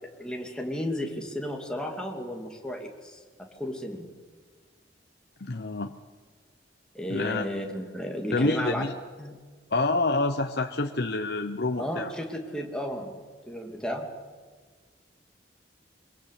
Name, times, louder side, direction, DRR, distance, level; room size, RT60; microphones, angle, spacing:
voice 1, 0.0-3.2 3.6-4.1 6.9-8.8 9.2-9.4 11.8-13.1 13.5-14.1, equal, 5° left, 1 dB, 2.7 m, -33 dB
voice 2, 5.4-5.9 7.1-7.5 8.3-8.9 9.7-12.1, left 2 dB, 60° left, 5 dB, 0.9 m, -27 dB
23.5 x 22.0 x 8.4 m, 1.5 s
head